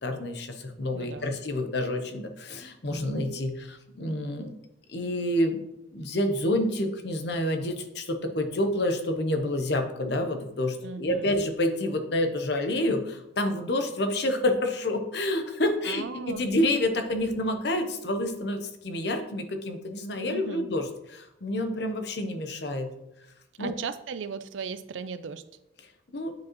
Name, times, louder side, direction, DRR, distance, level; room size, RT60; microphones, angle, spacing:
voice 1, 0.0-4.5 4.9-5.6 5.9-22.9 23.6-23.7 26.1-26.3, left 1 dB, 60° left, 6 dB, 0.8 m, -28 dB
voice 2, 0.9-1.3 10.8-11.3 15.9-16.5 20.2-20.7 23.6-25.4, right 6 dB, 80° right, 13 dB, 0.4 m, -37 dB
9.2 x 4.8 x 3.0 m, 0.86 s
head